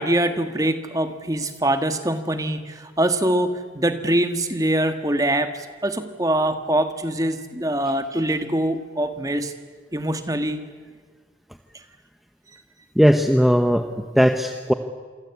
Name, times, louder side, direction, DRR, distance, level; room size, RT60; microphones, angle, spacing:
voice 1, 0.0-9.5 9.9-10.6, right 1 dB, 20° right, 8 dB, 1.6 m, -23 dB
voice 2, 13.0-14.7, equal, ahead, 6 dB, 0.9 m, -18 dB
27.5 x 23.5 x 8.4 m, 1.5 s
head